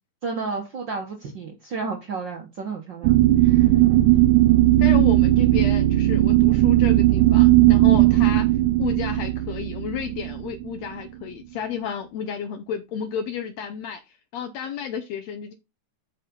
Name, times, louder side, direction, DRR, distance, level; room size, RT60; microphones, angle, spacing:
voice 1, 0.2-3.2 3.4-3.7, right 4 dB, 55° right, 1.3 m, -32 dB
sound 1, 3.0-11.0, right 16 dB, 85° right, 2.2 m, -17 dB
voice 2, 4.8-8.5 8.8-14.0 14.3-15.5, left 7 dB, 75° left, 1.6 m, -31 dB
8.3 x 5.8 x 3.8 m
omnidirectional pair, 3.7 m